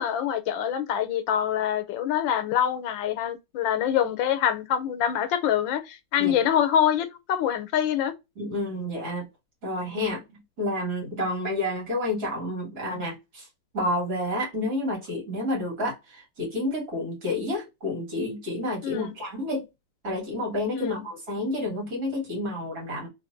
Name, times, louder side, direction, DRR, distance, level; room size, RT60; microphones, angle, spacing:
voice 1, 0.0-8.1 18.8-19.1 20.7-21.0, left 9 dB, 90° left, 1.4 m, -25 dB
voice 2, 8.4-9.3 9.6-13.5 13.7-19.7 20.0-23.1, left 1 dB, 55° right, 2.1 m, -30 dB
3.2 x 3.2 x 2.5 m
omnidirectional pair, 2.0 m